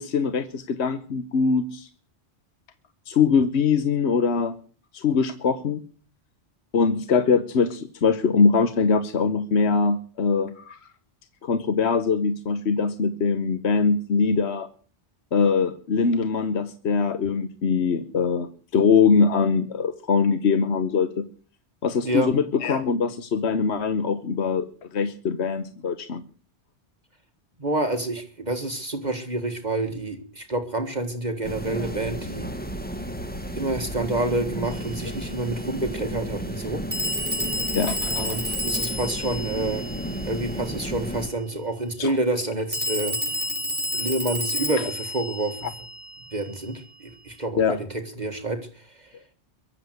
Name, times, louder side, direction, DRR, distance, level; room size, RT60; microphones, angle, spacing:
voice 1, 0.0-1.9 3.1-4.5 4.9-5.8 6.7-10.8 11.4-14.7 15.3-21.3 21.8-26.2 37.7-38.4 42.0-42.2 44.8-44.9 45.6-45.7 47.6-47.8, left 5 dB, 75° left, 11 dB, 1.3 m, -22 dB
voice 2, 27.6-32.5 33.5-36.8 38.1-39.9 40.3-43.2 43.9-45.6 46.3-47.9 48.2-48.6, right 2 dB, 40° right, 7 dB, 1.9 m, -28 dB
sound 1, 31.4-41.3, equal, 10° left, 1.9 m, -33 dB
Telephone, 34.7-34.8 36.9-40.6 42.7-46.4, equal, 10° right, 2.9 m, -30 dB
23.0 x 7.7 x 8.0 m, 0.41 s
omnidirectional pair, 1.1 m